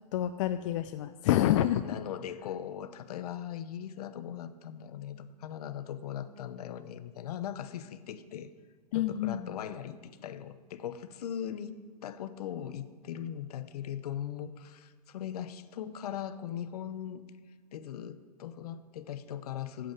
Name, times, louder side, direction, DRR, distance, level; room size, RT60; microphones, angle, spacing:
voice 1, 0.1-2.0 8.9-9.6, left 12 dB, 50° left, 10 dB, 0.4 m, -28 dB
voice 2, 1.8-8.5 8.9-17.2 17.7-19.9, left 9 dB, 65° left, 13 dB, 0.9 m, -39 dB
8.6 x 7.7 x 8.1 m, 1.5 s
hypercardioid pair, 130°, 21 cm